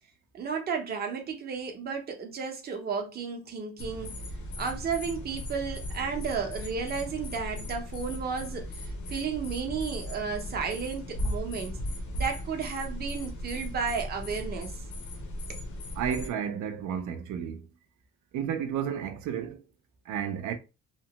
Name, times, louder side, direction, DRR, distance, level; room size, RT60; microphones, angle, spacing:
voice 1, 0.3-4.2 4.6-11.8 12.1-14.8 15.5-15.6, right 5 dB, 35° right, 0.6 m, -33 dB
sound 1, 3.8-16.3, left 1 dB, 70° left, 0.8 m, -37 dB
voice 2, 16.0-17.6 18.3-19.6 20.1-20.6, right 8 dB, 80° right, 0.4 m, -32 dB
2.9 x 2.1 x 2.8 m
cardioid pair, 175°, 30 cm